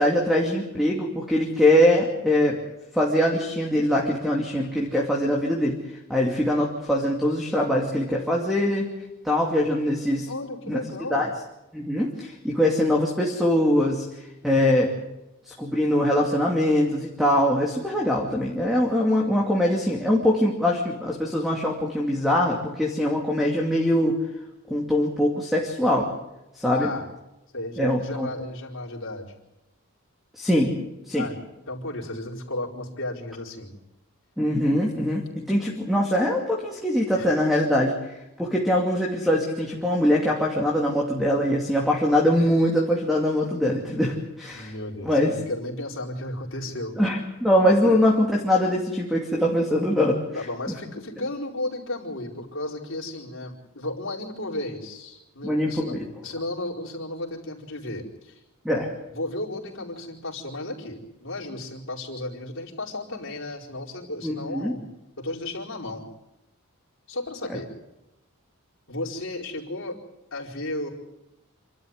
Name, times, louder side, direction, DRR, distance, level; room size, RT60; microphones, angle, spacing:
voice 1, 0.0-2.6 2.9-5.8 6.1-8.9 9.2-10.3 10.7-10.8 11.1-11.3 11.7-14.9 15.5-24.2 24.7-26.1 26.5-26.9 27.8-28.3 30.4-30.8 31.1-31.3 34.4-44.7 45.0-45.3 47.0-50.2 50.7-50.8 55.4-56.0 58.6-58.9 64.2-64.8 67.5-67.6, left 1 dB, ahead, -1 dB, 2.6 m, -22 dB
voice 2, 10.3-11.3 26.7-27.1 27.5-29.3 31.1-33.7 37.1-37.3 44.5-47.0 47.8-48.0 50.3-56.0 56.2-58.4 59.1-64.8 65.2-66.0 67.1-67.7 68.9-70.0 70.3-70.9, left 2 dB, 60° left, -2 dB, 4.6 m, -34 dB
28.0 x 12.5 x 9.7 m, 0.97 s
head